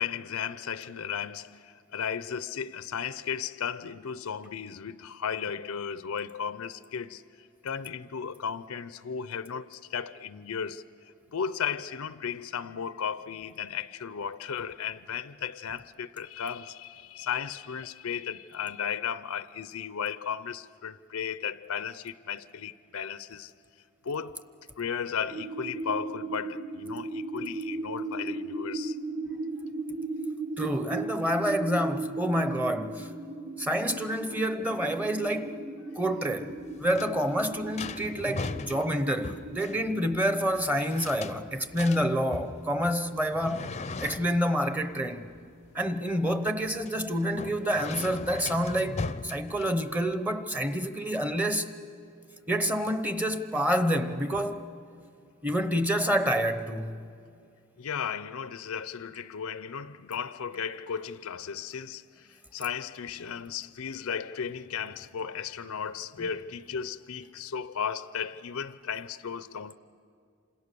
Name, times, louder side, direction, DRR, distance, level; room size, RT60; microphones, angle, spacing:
voice 1, 0.0-7.2 7.6-10.8 11.3-23.5 24.0-24.4 24.8-29.0 57.8-69.7, left 7 dB, 75° left, 0.6 m, -35 dB
sound 1, 25.3-40.3, right 3 dB, 70° right, 3.8 m, -37 dB
voice 2, 30.6-33.1 33.6-35.6 36.0-43.7 44.0-45.2 45.7-51.7 52.5-54.7 55.4-57.1, equal, 10° right, 0.9 m, -28 dB
sound 2, 36.5-50.1, left 3 dB, 30° left, 0.6 m, -40 dB
27.5 x 27.0 x 6.8 m
head